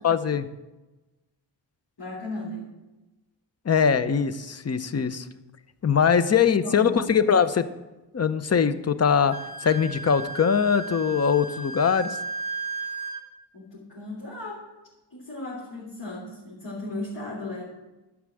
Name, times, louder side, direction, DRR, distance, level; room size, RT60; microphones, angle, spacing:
voice 1, 0.0-0.5 3.7-5.3 5.8-7.7 8.1-12.2, left 6 dB, 35° left, 13 dB, 0.7 m, -22 dB
voice 2, 2.0-2.7 6.5-7.0 13.5-14.6 15.1-17.6, left 2 dB, 60° left, -7 dB, 3.8 m, -36 dB
Wind instrument woodwind instrument, 9.3-13.2, right 3 dB, 15° right, 1.9 m, -35 dB
12.0 x 6.1 x 7.7 m, 1.1 s
wide cardioid pair, 120°, 44 cm